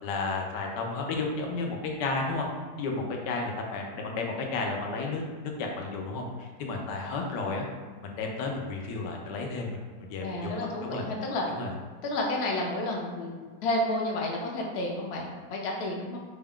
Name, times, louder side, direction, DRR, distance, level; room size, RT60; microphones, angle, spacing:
voice 1, 0.0-2.5 2.8-7.6 8.0-11.0 11.5-11.7, left 3 dB, 90° left, 1 dB, 1.3 m, -32 dB
voice 2, 10.2-11.5 12.0-13.3 13.6-16.2, left 1 dB, 70° left, -1 dB, 0.6 m, -30 dB
4.0 x 2.3 x 3.6 m, 1.6 s
omnidirectional pair, 1.8 m